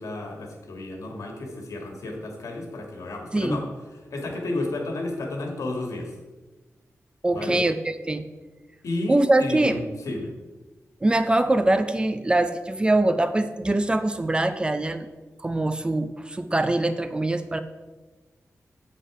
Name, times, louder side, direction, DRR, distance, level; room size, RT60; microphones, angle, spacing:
voice 1, 0.0-3.7 4.1-6.1 7.3-7.6 8.8-10.3, left 2 dB, 85° left, 2 dB, 1.8 m, -32 dB
voice 2, 7.2-8.2 9.1-9.8 11.0-15.1 15.4-17.6, right 2 dB, 20° right, 10 dB, 0.5 m, -23 dB
8.2 x 7.7 x 4.8 m, 1.2 s
wide cardioid pair, 155°, 5 cm